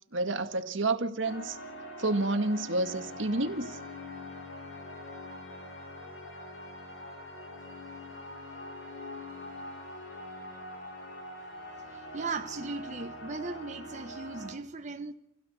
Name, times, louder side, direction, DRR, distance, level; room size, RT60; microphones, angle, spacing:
voice 1, 0.1-1.6 2.0-3.8, right 2 dB, 75° right, 2.0 m, -29 dB
sound 1, 1.2-14.5, left 1 dB, 80° left, 6.5 m, -43 dB
voice 2, 12.1-15.1, right 3 dB, 40° right, 1.4 m, -37 dB
27.5 x 17.0 x 8.0 m
head